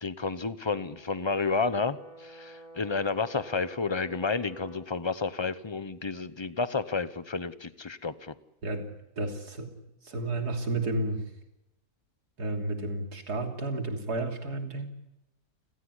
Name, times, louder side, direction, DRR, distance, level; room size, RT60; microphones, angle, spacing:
voice 1, 0.0-8.3, left 4 dB, 25° left, 14 dB, 0.7 m, -31 dB
Brass instrument, 0.7-4.9, right 1 dB, 35° right, 4.6 m, -50 dB
voice 2, 9.2-9.7 10.0-11.2 12.4-14.9, right 2 dB, 80° right, 4 dB, 3.6 m, -31 dB
29.5 x 16.5 x 9.9 m, 0.90 s
omnidirectional pair, 1.7 m